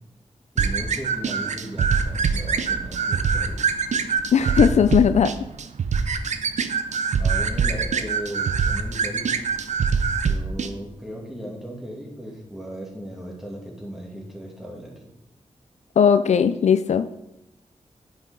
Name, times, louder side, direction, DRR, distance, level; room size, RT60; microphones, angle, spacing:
voice 1, 0.5-3.6 7.2-9.4 10.3-15.1, equal, 5° right, -2 dB, 2.5 m, -37 dB
sound 1, 0.6-10.7, right 5 dB, 75° right, 0.6 m, -24 dB
voice 2, 4.3-5.3 16.0-17.2, left 7 dB, 70° left, 12 dB, 0.4 m, -18 dB
9.4 x 6.1 x 3.8 m, 0.88 s
cardioid pair, 70°, 12 cm